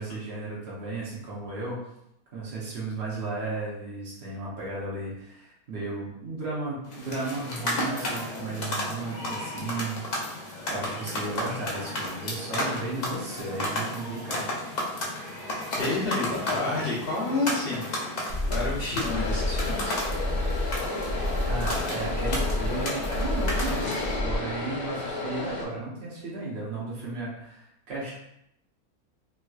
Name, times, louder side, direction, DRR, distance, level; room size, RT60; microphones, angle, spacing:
voice 1, 0.0-1.8 2.3-10.0 10.7-14.4 21.4-23.9 24.2-28.1, right 2 dB, 45° right, -6 dB, 1.1 m, -34 dB
sound 1, 6.9-24.2, left 1 dB, 70° left, 0.4 m, -33 dB
voice 2, 15.7-17.8 18.2-20.0, left 3 dB, 50° left, -5 dB, 0.8 m, -29 dB
sound 2, 18.3-24.4, left 1 dB, 25° left, 1.0 m, -30 dB
sound 3, 19.0-25.6, left 2 dB, 85° left, 1.5 m, -33 dB
3.5 x 2.9 x 2.3 m, 0.79 s
omnidirectional pair, 1.6 m